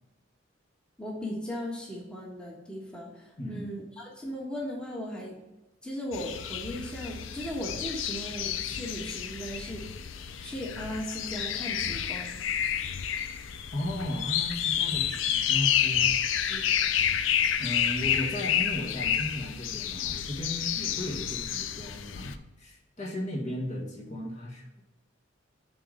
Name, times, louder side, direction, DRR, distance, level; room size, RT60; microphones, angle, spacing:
voice 1, 1.0-5.3 5.8-12.4 16.5-16.7, equal, 5° left, -3 dB, 1.3 m, -37 dB
voice 2, 3.4-3.7 13.7-16.1 17.6-24.8, left 1 dB, 40° left, -2 dB, 1.5 m, -35 dB
sound 1, 6.1-22.3, left 9 dB, 75° left, 0.5 m, -30 dB
8.2 x 3.9 x 5.4 m, 1.0 s
head